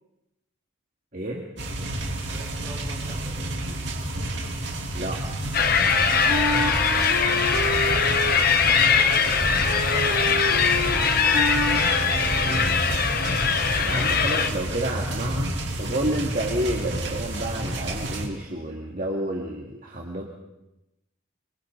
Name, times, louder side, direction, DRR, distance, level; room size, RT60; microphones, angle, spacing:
voice 1, 1.1-1.5 4.9-5.3 12.5-12.7 13.8-20.2, right 1 dB, 40° right, -2 dB, 2.2 m, -30 dB
sound 1, 1.6-18.3, right 1 dB, 55° right, 3.2 m, -30 dB
voice 2, 2.3-3.8 6.2-6.8 7.2-8.1 8.5-11.2 12.0-12.7, right 1 dB, 15° right, -4 dB, 6.5 m, -44 dB
sound 2, 5.5-14.5, left 6 dB, 45° left, 1.2 m, -22 dB
Wind instrument woodwind instrument, 5.8-12.8, right 1 dB, 85° right, 2.9 m, -30 dB
26.5 x 24.5 x 4.0 m, 0.93 s
head